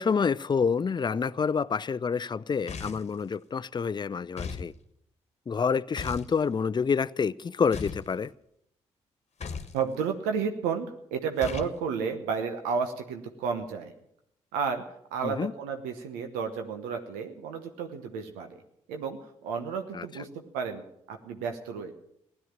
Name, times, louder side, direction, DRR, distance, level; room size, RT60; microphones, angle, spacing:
voice 1, 0.0-4.7 5.5-8.3 15.2-15.5 19.9-20.1, left 6 dB, 30° left, 0.5 m, -28 dB
sound 1, 2.7-3.2 4.4-4.7 6.0-6.3 7.7-8.1 9.4-9.8 11.4-11.8, left 5 dB, 50° left, 1.4 m, -37 dB
voice 2, 9.7-13.9 14.5-18.6 18.9-21.9, right 6 dB, 85° right, 1.1 m, -32 dB
16.0 x 11.0 x 7.4 m
hypercardioid pair, 45°, 14 cm